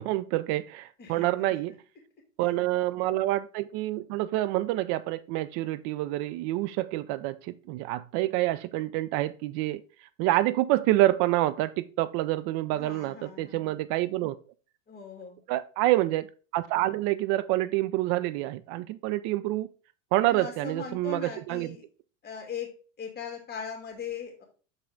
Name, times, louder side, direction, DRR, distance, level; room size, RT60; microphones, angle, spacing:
voice 1, 0.0-1.8 2.4-9.8 10.2-14.4 15.5-16.3 16.5-19.7 20.1-21.8, right 16 dB, 50° right, 0.6 m, -27 dB
voice 2, 1.0-1.6 2.4-2.6 12.7-13.8 14.9-15.4 20.3-21.8 22.2-22.7 23.0-24.4, left 6 dB, 25° left, 2.7 m, -40 dB
5.8 x 5.4 x 3.7 m
hypercardioid pair, 100°, 40 cm